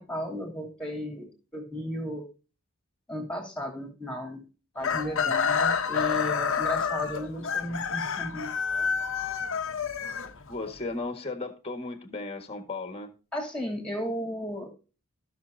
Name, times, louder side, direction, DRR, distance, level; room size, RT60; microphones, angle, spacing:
voice 1, 0.0-2.3 3.1-4.4 4.7-8.5 13.3-14.7, equal, 5° left, 2.9 m, -34 dB
Chicken rooster, 4.8-10.8, left 6 dB, 60° left, 0.9 m, -28 dB
voice 2, 10.5-13.1, left 3 dB, 25° left, 1.5 m, -35 dB
16.0 x 6.2 x 2.6 m
head